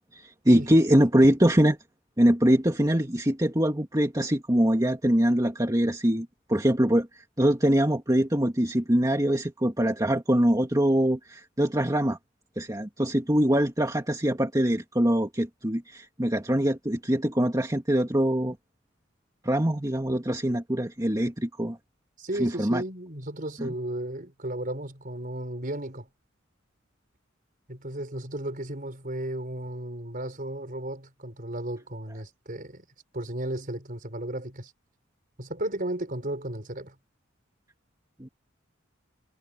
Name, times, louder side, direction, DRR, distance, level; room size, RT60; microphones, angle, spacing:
voice 1, 0.1-1.8 2.2-12.2 12.6-18.6 19.4-21.8 22.3-22.8 23.6-23.7 38.2-38.3, equal, 20° right, 2.2 m, -23 dB
voice 2, 22.2-26.1 27.7-32.8 33.1-34.7 35.4-36.9, right 1 dB, 45° right, 5.3 m, -34 dB
head